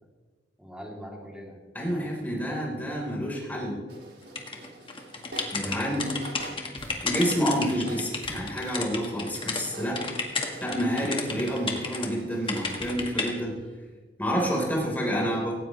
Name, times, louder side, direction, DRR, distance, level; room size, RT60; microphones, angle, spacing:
voice 1, 0.6-2.3 6.0-6.8, equal, 5° right, -2 dB, 3.3 m, -45 dB
voice 2, 1.7-3.8 5.5-6.1 7.0-10.0 10.6-13.6 14.2-15.6, equal, 10° left, -3 dB, 4.4 m, -28 dB
sound 1, 3.9-8.8 9.2-13.7, right 1 dB, 85° right, 5.5 m, -45 dB
sound 2, 4.4-9.6 10.0-12.1 12.5-13.3, left 4 dB, 30° left, 1.8 m, -32 dB
18.0 x 17.5 x 3.4 m, 1.4 s
head